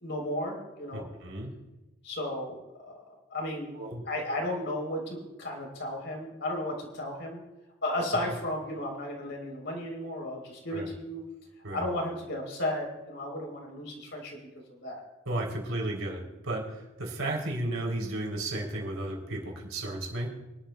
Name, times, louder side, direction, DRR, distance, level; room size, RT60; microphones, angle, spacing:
voice 1, 0.0-1.1 2.0-3.0 3.3-3.8 4.1-7.4 7.8-11.2 11.7-14.4 14.7-15.0, left 1 dB, 60° left, 1 dB, 3.5 m, -34 dB
voice 2, 0.9-1.5 3.7-4.0 10.7-10.9 11.6-11.8 15.2-20.3, right 1 dB, 90° right, -1 dB, 3.3 m, -34 dB
25.0 x 11.5 x 2.3 m, 1.1 s
head